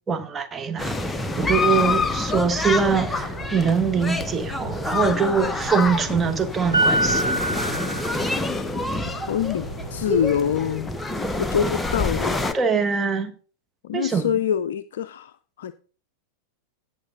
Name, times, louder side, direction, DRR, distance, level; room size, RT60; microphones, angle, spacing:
voice 1, 0.1-1.0 1.4-7.4 12.5-13.3 13.9-14.3, right 6 dB, 15° right, 1.3 m, -23 dB
sound 1, 0.8-12.5, left 3 dB, 10° left, 0.8 m, -27 dB
sound 2, 1.3-6.8 7.3-7.9, left 3 dB, 30° right, 4.4 m, -41 dB
sound 3, 2.8-10.6, right 1 dB, 85° right, 1.0 m, -30 dB
voice 2, 9.1-10.9 11.4-12.4 13.8-15.7, left 8 dB, 60° left, 0.4 m, -25 dB
16.0 x 6.3 x 3.7 m
figure-of-eight pair, 90°, 0 cm